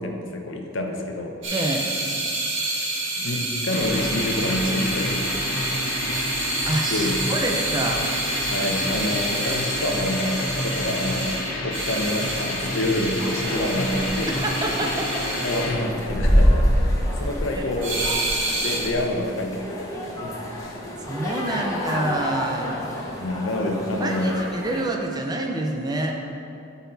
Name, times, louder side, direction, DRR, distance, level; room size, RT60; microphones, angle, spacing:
voice 1, 0.0-1.6 3.2-5.5 6.9-7.2 8.5-11.4 11.6-14.3 15.4-18.0 18.6-20.8 23.2-24.3, left 1 dB, 70° left, 2 dB, 0.9 m, -27 dB
sound 1, 1.4-15.7 17.8-18.9, right 2 dB, 65° right, 1.8 m, -29 dB
voice 2, 1.5-1.8 6.7-8.0 14.2-15.2 17.5-17.7 21.1-23.0 24.0-26.2, right 1 dB, 20° right, 1 dB, 0.5 m, -27 dB
sound 2, 3.7-15.8, left 1 dB, 85° left, 1.3 m, -30 dB
sound 3, 13.2-24.8, equal, 15° left, 0.9 m, -26 dB
12.0 x 4.1 x 4.0 m, 2.6 s
head